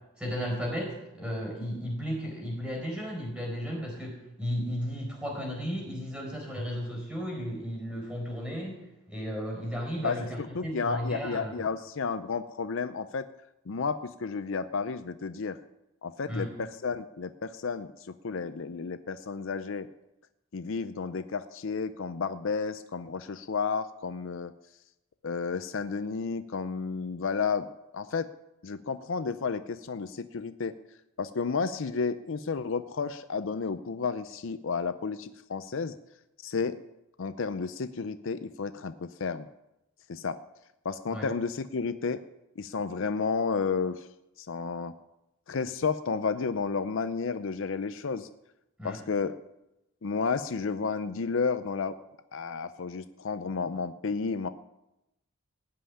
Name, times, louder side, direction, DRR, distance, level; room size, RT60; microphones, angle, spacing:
voice 1, 0.2-8.8 9.1-11.5 16.3-16.5 41.1-41.3 48.8-49.0, equal, 5° right, 0 dB, 4.5 m, -34 dB
voice 2, 10.0-13.3 13.7-15.6 16.0-19.9 20.5-24.5 25.2-27.7 27.9-28.3 28.6-30.8 31.2-36.0 36.4-36.8 37.2-39.5 40.1-40.4 40.8-42.2 42.6-44.1 44.4-44.9 45.5-48.3 48.8-49.3 50.0-52.0 52.3-54.5, left 5 dB, 60° left, 12 dB, 0.5 m, -32 dB
16.5 x 5.7 x 9.8 m, 0.91 s
head